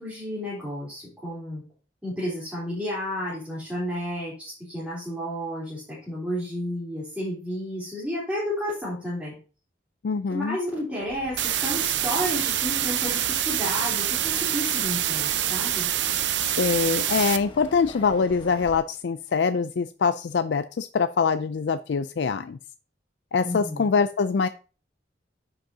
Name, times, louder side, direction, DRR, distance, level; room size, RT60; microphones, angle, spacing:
voice 1, 0.0-1.6 2.0-9.4 10.3-15.9 23.4-23.9, equal, 5° right, -8 dB, 3.7 m, -31 dB
voice 2, 10.0-10.6 16.4-22.6 23.3-24.5, left 5 dB, 70° left, 11 dB, 0.4 m, -24 dB
Chirp tweet, 11.0-18.8, left 1 dB, 25° left, 1.1 m, -44 dB
sound 1, 11.4-17.4, right 11 dB, 80° right, 0.6 m, -26 dB
9.9 x 6.4 x 2.8 m, 0.35 s
head